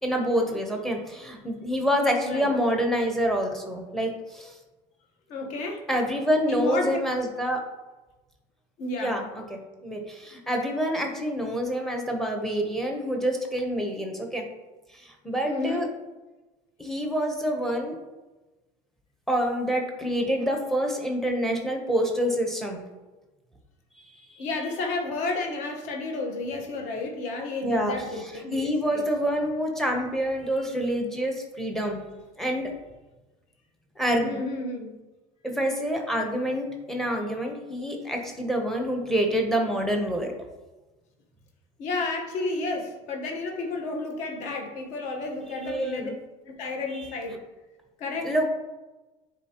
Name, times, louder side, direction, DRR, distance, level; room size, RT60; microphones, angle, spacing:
voice 1, 0.0-4.6 5.9-7.6 9.0-14.5 15.0-15.9 16.8-18.0 19.3-22.8 24.3-24.4 27.6-27.9 28.5-32.0 32.4-32.7 34.0-34.4 35.4-40.3 45.6-46.1 48.2-48.5, equal, ahead, 2 dB, 0.8 m, -27 dB
voice 2, 5.3-5.8 6.5-7.0 8.8-9.2 15.4-15.9 24.4-29.1 34.2-34.9 41.8-46.1 46.5-47.4 48.0-48.5, left 3 dB, 55° left, 2 dB, 1.1 m, -31 dB
9.8 x 4.1 x 2.9 m, 1.1 s
cardioid pair, 180°, 15 cm